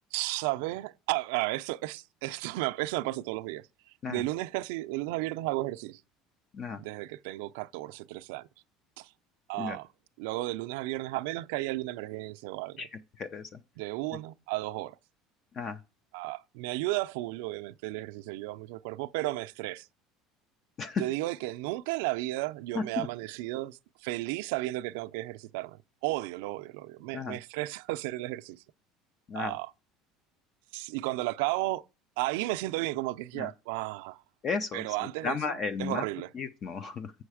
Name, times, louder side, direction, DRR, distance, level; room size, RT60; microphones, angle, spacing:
voice 1, 0.1-3.7 4.1-6.0 6.8-8.5 9.0-9.1 9.5-9.9 10.2-12.9 13.8-15.0 16.1-19.9 21.0-28.6 29.4-29.7 30.7-31.8 32.2-34.2 34.7-36.3, right 19 dB, 85° right, 0.4 m, -33 dB
voice 2, 13.2-13.6 15.5-15.8 20.8-21.0 22.8-23.1 27.1-27.4 29.3-29.6 33.3-33.5 34.4-34.8 35.2-36.0 36.3-37.1, left 5 dB, 30° left, 0.4 m, -33 dB
7.7 x 6.4 x 4.8 m
cardioid pair, 175°, 0 cm